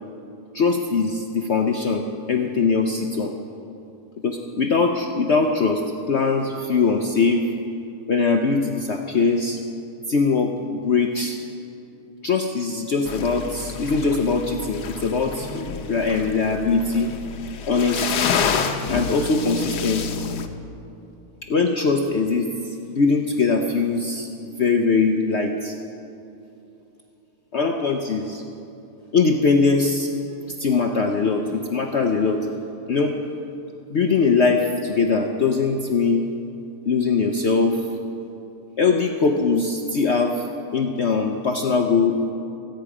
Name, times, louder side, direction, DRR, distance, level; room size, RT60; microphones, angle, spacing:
voice 1, 0.5-3.3 4.2-5.8 6.1-7.5 8.1-9.6 10.1-11.4 12.2-17.1 17.7-18.4 18.9-20.2 21.4-22.5 22.9-25.7 27.5-28.4 29.1-30.1 30.6-32.5 32.9-33.1 33.9-36.3 36.9-37.9 38.8-40.4 40.7-42.3, left 4 dB, 55° left, 3 dB, 0.8 m, -21 dB
sound 1, 13.1-20.5, left 6 dB, 80° left, 1.4 m, -28 dB
25.0 x 9.3 x 4.9 m, 2.8 s
omnidirectional pair, 1.8 m